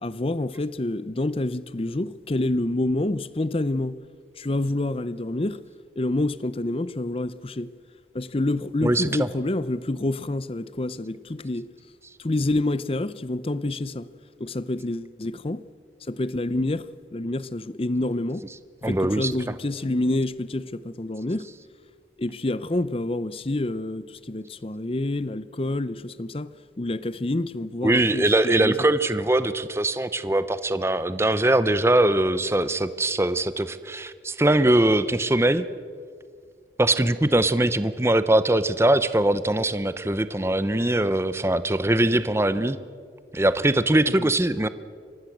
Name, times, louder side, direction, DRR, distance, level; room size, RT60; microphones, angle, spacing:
voice 1, 0.0-4.0 4.4-5.6 6.0-7.7 8.1-11.7 12.2-14.1 14.4-15.6 16.1-18.4 18.9-21.5 22.2-26.5 26.8-28.8 44.2-44.3, left 2 dB, 30° left, 0.6 m, -27 dB
voice 2, 8.8-9.3 18.8-19.3 27.8-35.7 36.8-42.8 43.3-44.7, right 1 dB, 15° right, 0.7 m, -22 dB
24.5 x 18.0 x 7.9 m
head